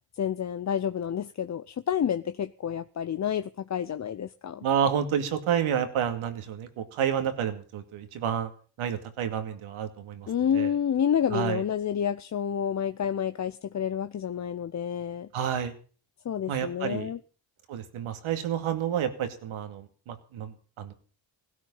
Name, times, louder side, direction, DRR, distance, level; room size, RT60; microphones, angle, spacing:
voice 1, 0.1-4.6 10.3-15.3 16.2-17.2, left 8 dB, 35° left, 0.7 m, -29 dB
voice 2, 4.6-8.5 8.8-10.3 10.5-10.7 11.3-11.6 15.3-15.7 16.5-17.1 17.7-20.9, right 9 dB, 75° right, 2.5 m, -29 dB
17.0 x 12.5 x 5.6 m
supercardioid pair, 65°, 49 cm